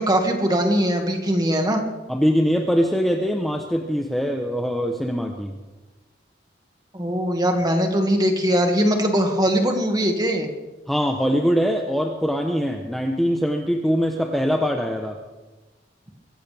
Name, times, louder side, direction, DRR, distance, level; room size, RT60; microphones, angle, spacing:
voice 1, 0.0-1.8 6.9-10.5, equal, 20° right, 3 dB, 2.1 m, -21 dB
voice 2, 2.1-5.6 10.9-15.2, equal, ahead, 2 dB, 1.0 m, -22 dB
24.0 x 14.5 x 3.5 m, 1.2 s
head